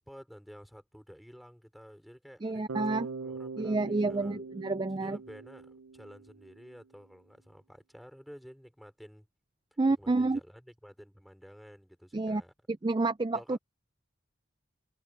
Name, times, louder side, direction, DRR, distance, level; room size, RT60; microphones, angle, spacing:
voice 1, 0.0-4.4 5.0-9.3 9.9-12.5 13.3-13.6, equal, ahead, 4.8 m, -51 dB
voice 2, 2.4-3.1 3.6-5.2 9.8-10.4 12.1-12.4 12.8-13.6, right 3 dB, 20° right, 0.4 m, -29 dB
Bass guitar, 2.7-6.6, right 4 dB, 85° right, 0.5 m, -42 dB
head